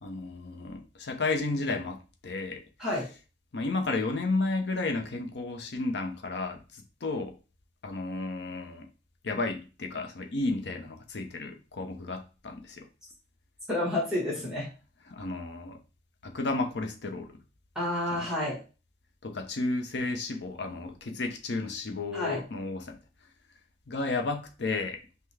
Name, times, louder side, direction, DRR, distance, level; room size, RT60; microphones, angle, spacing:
voice 1, 0.0-2.6 3.5-7.3 7.8-8.9 9.2-12.9 15.1-15.8 16.2-17.4 18.1-18.3 19.2-23.0 23.9-25.0, left 3 dB, 65° left, 0.6 m, -32 dB
voice 2, 13.7-14.7 17.7-18.6 22.1-22.4, left 1 dB, 5° right, 1.2 m, -29 dB
5.6 x 2.1 x 3.2 m
head